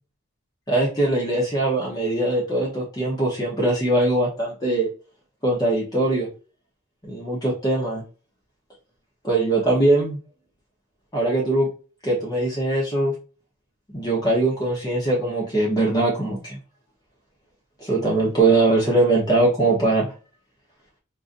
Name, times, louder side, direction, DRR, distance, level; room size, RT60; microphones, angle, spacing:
voice 1, 0.7-4.9 5.4-6.3 7.0-8.0 9.2-10.2 11.1-11.7 12.0-13.1 13.9-16.6 17.8-20.1, right 2 dB, 20° left, -4 dB, 0.9 m, -21 dB
3.8 x 2.6 x 2.5 m, 0.35 s
head